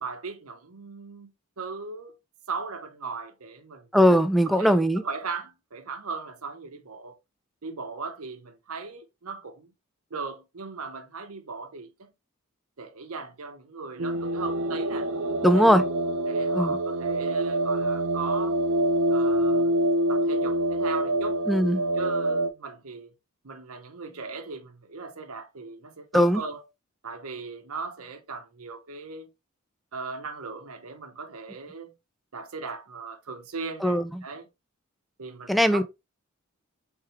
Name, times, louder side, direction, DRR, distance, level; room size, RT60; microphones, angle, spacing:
voice 1, 0.0-2.2 2.5-3.9 4.5-7.2 7.6-9.7 10.1-12.1 12.8-15.1 15.5-15.9 16.2-18.6 19.1-19.7 20.1-21.4 21.9-23.1 23.4-26.6 27.0-29.3 29.9-31.9 32.3-34.5 35.2-35.9, right 4 dB, 85° right, 0.9 m, -38 dB
voice 2, 3.9-5.0 15.4-15.8 16.5-16.8 21.5-21.8 26.1-26.4 33.8-34.2 35.5-35.8, equal, ahead, 0.4 m, -20 dB
sound 1, 14.0-22.5, right 1 dB, 65° right, 0.6 m, -26 dB
4.6 x 3.6 x 3.0 m
head